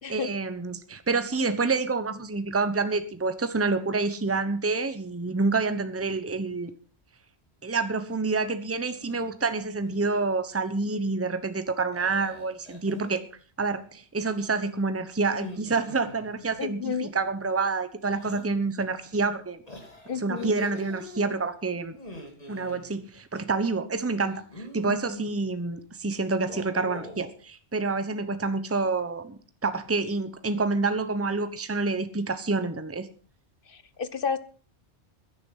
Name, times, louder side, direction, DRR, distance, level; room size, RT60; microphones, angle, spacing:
voice 1, 0.1-6.7 7.6-13.2 13.6-19.6 20.2-22.0 22.5-33.1, right 3 dB, 15° right, 11 dB, 1.0 m, -28 dB
sound 1, 9.0-9.3 9.7-10.2 11.9-13.2 15.2-16.6 18.1-18.5 19.7-21.2 21.9-22.8 24.2-25.3 26.3-27.3, equal, 35° left, 3.3 m, -42 dB
voice 2, 16.6-17.1 20.0-20.5 33.7-34.4, left 6 dB, 55° left, 14 dB, 1.2 m, -31 dB
16.0 x 10.5 x 5.7 m, 0.41 s
omnidirectional pair, 1.1 m